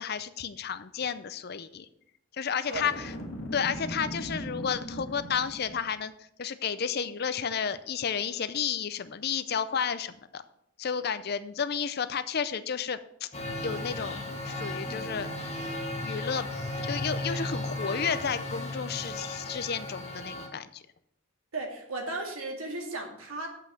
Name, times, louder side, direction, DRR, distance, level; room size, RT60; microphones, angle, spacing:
voice 1, 0.0-1.9 2.4-3.1 3.5-6.1 6.4-10.4 10.8-13.3 13.6-14.2 14.4-15.3 16.0-16.5 16.8-20.8, left 7 dB, 45° left, 13 dB, 0.5 m, -32 dB
Boom, 2.7-5.9, equal, 65° left, 1.6 m, -39 dB
Male speech man speaking, 13.3-20.5, left 2 dB, 30° left, 1.2 m, -35 dB
voice 2, 21.5-23.5, right 2 dB, 75° right, 1 dB, 2.1 m, -35 dB
7.6 x 6.2 x 6.7 m, 0.77 s
head